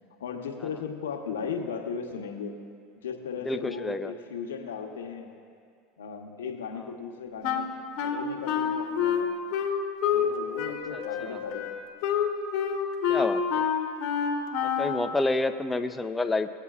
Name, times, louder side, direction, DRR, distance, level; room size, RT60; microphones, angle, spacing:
voice 1, 0.2-2.6 3.0-5.3 6.0-9.3 10.1-11.7, left 6 dB, 90° left, 3 dB, 0.9 m, -36 dB
voice 2, 3.5-4.1 10.9-11.4 13.1-13.6 14.8-16.5, left 2 dB, 10° left, 9 dB, 0.5 m, -29 dB
Wind instrument woodwind instrument, 7.4-10.3 10.6-15.1, left 7 dB, 60° left, 1.0 m, -28 dB
18.5 x 8.2 x 2.4 m, 2.3 s
hypercardioid pair, 100°, 0 cm